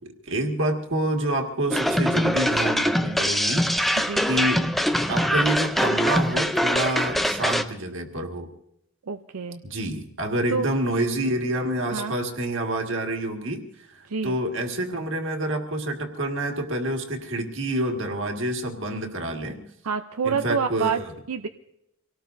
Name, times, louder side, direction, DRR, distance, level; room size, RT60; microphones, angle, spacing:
voice 1, 0.2-4.6 5.1-8.5 9.6-19.6 20.2-21.1, right 1 dB, 60° right, 3 dB, 2.0 m, -28 dB
sound 1, 1.7-7.6, equal, ahead, 0.5 m, -23 dB
voice 2, 4.0-4.3 9.1-9.6 10.5-10.7 11.9-12.1 14.1-14.4 19.8-21.0 21.3-21.5, right 5 dB, 85° right, 7 dB, 0.6 m, -27 dB
26.0 x 18.0 x 2.7 m, 0.82 s
head